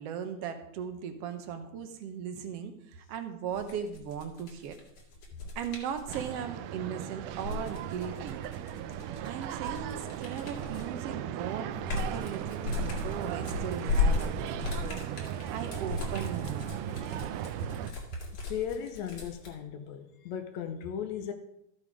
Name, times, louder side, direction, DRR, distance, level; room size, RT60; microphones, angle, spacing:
voice 1, 0.0-4.8 5.5-8.4 9.2-14.9 15.5-16.7, right 7 dB, 65° right, 8 dB, 1.7 m, -38 dB
sound 1, 3.5-6.3 7.2-11.0 11.4-19.5, left 4 dB, 55° left, 3.4 m, -35 dB
sound 2, 6.1-17.9, right 11 dB, 85° right, 2.1 m, -37 dB
voice 2, 16.9-17.2 18.4-21.3, left 8 dB, 75° left, 8 dB, 1.9 m, -37 dB
13.5 x 7.6 x 4.9 m, 0.81 s
omnidirectional pair, 3.6 m